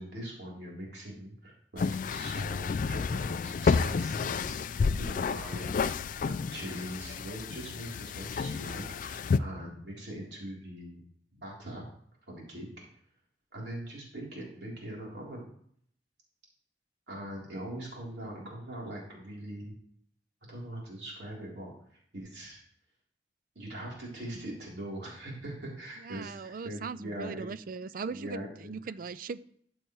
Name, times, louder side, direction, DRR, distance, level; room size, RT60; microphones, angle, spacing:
voice 1, 0.0-5.9 6.2-11.0 11.3-11.8 12.3-12.7 13.5-15.5 17.1-19.7 20.5-22.6 23.6-27.5 28.1-28.8, right 1 dB, 70° right, -3 dB, 3.5 m, -42 dB
sound 1, 1.8-9.4, left 5 dB, 50° left, 0.3 m, -30 dB
voice 2, 26.0-29.4, right 5 dB, 50° right, 16 dB, 0.4 m, -39 dB
13.0 x 7.8 x 3.1 m, 0.63 s
head